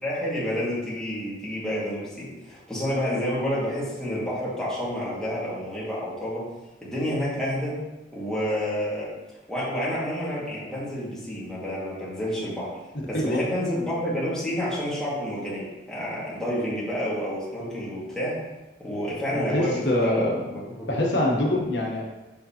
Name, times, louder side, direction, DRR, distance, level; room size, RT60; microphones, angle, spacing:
voice 1, 0.0-6.4 6.8-7.8 8.1-9.1 9.5-12.7 13.1-18.3 18.8-21.0, equal, 5° left, -8 dB, 1.9 m, -29 dB
voice 2, 19.3-20.4 20.9-22.0, left 1 dB, 90° left, -2 dB, 1.1 m, -24 dB
6.4 x 5.3 x 2.9 m, 1.1 s
head